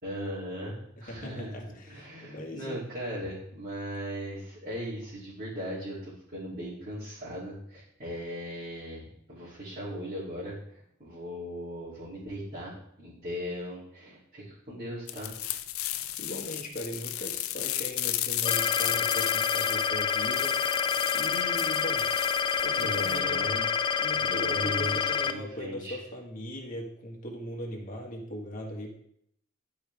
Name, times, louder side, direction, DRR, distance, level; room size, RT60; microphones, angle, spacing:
voice 1, 0.0-12.7 13.0-15.4 22.8-23.7 24.1-26.0, equal, 40° right, -11 dB, 3.0 m, -38 dB
voice 2, 1.0-2.8 15.9-20.6 21.1-22.1 22.3-23.5 24.0-28.9, equal, 40° left, -1 dB, 1.7 m, -39 dB
sound 1, 15.1-23.2, left 13 dB, 90° left, 0.5 m, -34 dB
sound 2, 18.4-25.3, left 7 dB, 25° left, 0.4 m, -28 dB
11.5 x 5.0 x 3.5 m, 0.72 s
head